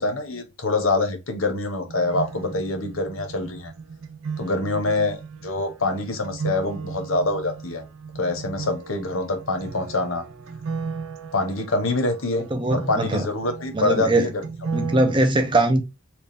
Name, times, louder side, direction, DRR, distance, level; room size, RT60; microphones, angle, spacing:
voice 1, 0.0-3.7 4.4-7.8 8.2-10.2 11.3-14.4, left 2 dB, 70° left, 1.0 m, -25 dB
sound 1, 1.9-15.1, right 5 dB, 75° right, 0.4 m, -35 dB
voice 2, 12.5-13.3 13.7-14.3 14.7-15.8, right 2 dB, 20° right, 0.5 m, -21 dB
4.4 x 2.4 x 3.3 m
head